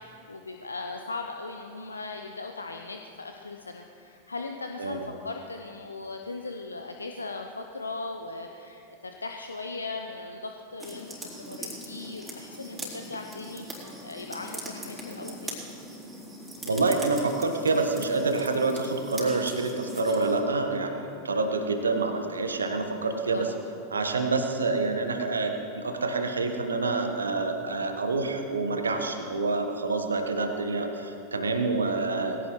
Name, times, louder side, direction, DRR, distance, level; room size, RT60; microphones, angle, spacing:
voice 1, 0.0-8.8 9.2-15.6 22.9-23.6, left 3 dB, 75° left, 4 dB, 0.8 m, -38 dB
sound 1, 10.8-20.4, right 1 dB, 10° right, 4.0 m, -41 dB
voice 2, 16.6-23.5 23.9-32.4, right 3 dB, 75° right, 5 dB, 1.5 m, -27 dB
21.5 x 16.5 x 3.2 m, 2.8 s
figure-of-eight pair, 90°, 0 cm